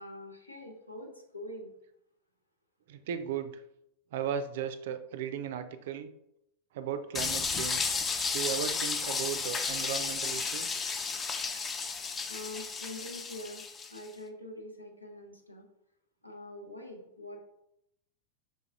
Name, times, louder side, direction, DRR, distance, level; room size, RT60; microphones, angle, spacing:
voice 1, 0.0-1.7 12.3-13.6 13.9-15.7 16.2-17.4, left 1 dB, 85° left, 2 dB, 0.8 m, -44 dB
voice 2, 2.9-3.6 4.1-6.1 6.7-7.9 8.3-10.8, right 8 dB, 55° right, 10 dB, 0.4 m, -36 dB
sound 1, 7.1-14.0, left 5 dB, 20° left, 0.4 m, -33 dB
5.2 x 3.9 x 2.4 m, 0.79 s
figure-of-eight pair, 90°, 0 cm